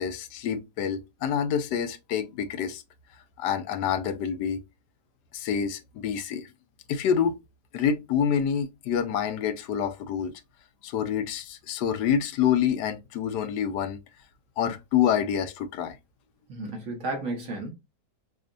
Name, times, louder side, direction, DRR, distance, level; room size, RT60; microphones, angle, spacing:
voice 1, 0.0-2.8 3.4-4.6 5.3-6.5 6.9-7.4 7.7-10.3 10.8-14.0 14.6-16.0, left 8 dB, 75° left, 1.2 m, -27 dB
voice 2, 16.5-17.7, right 2 dB, 50° right, 1.5 m, -33 dB
4.9 x 2.3 x 2.6 m
omnidirectional pair, 1.9 m